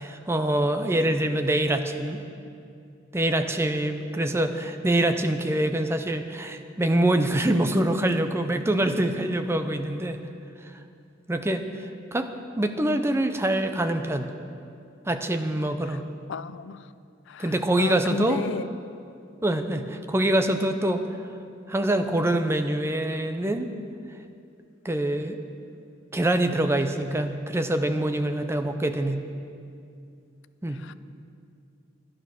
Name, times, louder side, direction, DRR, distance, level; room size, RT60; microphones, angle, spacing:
voice 1, 0.0-2.2 3.1-10.2 11.3-11.7 12.1-12.3 12.6-14.3 15.1-16.1 17.4-18.4 19.4-21.0 21.7-23.7 24.8-25.4 26.1-29.2 30.6-30.8, right 1 dB, 15° right, 0.6 m, -25 dB
voice 2, 16.3-16.9 17.3-18.7 30.7-30.9, left 6 dB, 65° left, 0.4 m, -34 dB
11.0 x 10.5 x 6.3 m
head